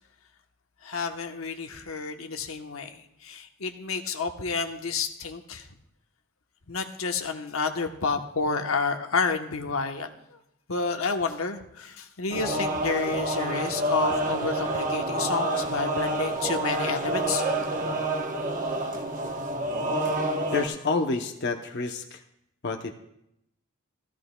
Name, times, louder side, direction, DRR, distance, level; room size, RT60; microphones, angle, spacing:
voice 1, 0.8-5.7 6.7-10.4 10.7-17.4, left 4 dB, 90° left, 5 dB, 1.0 m, -30 dB
sound 1, 12.3-20.7, right 1 dB, 40° right, 1.0 m, -28 dB
voice 2, 20.5-22.2 22.6-22.9, left 3 dB, 55° left, 5 dB, 0.7 m, -28 dB
15.0 x 14.0 x 2.2 m, 0.80 s
head